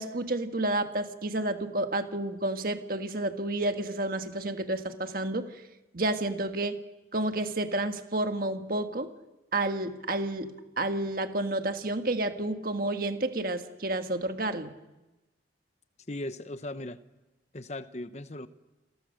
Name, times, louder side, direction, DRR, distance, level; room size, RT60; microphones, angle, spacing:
voice 1, 0.0-5.5 5.9-6.8 7.1-9.1 9.5-14.7, right 2 dB, 50° right, 7 dB, 1.6 m, -30 dB
voice 2, 16.1-17.0 17.5-18.5, left 1 dB, 35° left, 11 dB, 1.0 m, -38 dB
29.5 x 22.5 x 6.5 m, 1.0 s
head